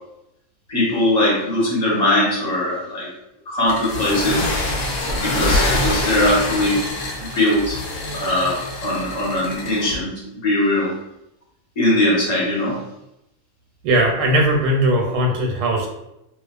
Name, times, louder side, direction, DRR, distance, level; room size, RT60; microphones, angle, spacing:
voice 1, 0.7-3.1 3.4-4.4 5.0-6.8 7.3-7.8 8.1-10.1 10.4-10.9 11.8-12.8, left 1 dB, 30° left, -7 dB, 0.8 m, -20 dB
sound 1, 3.7-10.0, left 2 dB, 70° left, 0.8 m, -25 dB
voice 2, 13.8-15.9, right 1 dB, 85° right, 0 dB, 1.2 m, -18 dB
2.4 x 2.3 x 2.3 m, 0.85 s
omnidirectional pair, 1.7 m